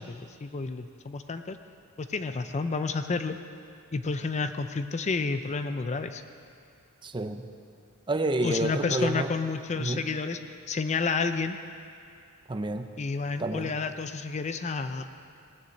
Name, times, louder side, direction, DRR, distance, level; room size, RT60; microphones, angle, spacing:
voice 1, 0.0-1.6 2.0-3.4 3.9-6.2 8.4-11.6 13.0-15.1, left 4 dB, 30° left, 9 dB, 0.4 m, -30 dB
voice 2, 7.0-7.5 8.1-9.3 9.8-10.0 12.5-12.9 13.4-13.7, right 2 dB, 20° right, 7 dB, 0.5 m, -29 dB
18.0 x 6.6 x 7.8 m, 2.4 s
head